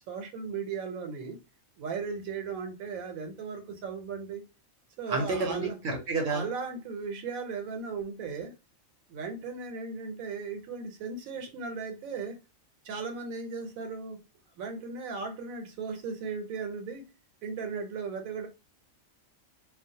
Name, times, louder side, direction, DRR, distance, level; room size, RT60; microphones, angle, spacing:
voice 1, 0.0-1.4 1.8-4.4 5.0-5.8 6.3-8.5 9.1-12.4 12.8-14.2 14.6-17.1 17.4-18.5, right 5 dB, 85° right, 1.0 m, -36 dB
voice 2, 5.1-6.4, right 3 dB, 65° right, 0.8 m, -30 dB
2.3 x 2.0 x 2.6 m
omnidirectional pair, 1.4 m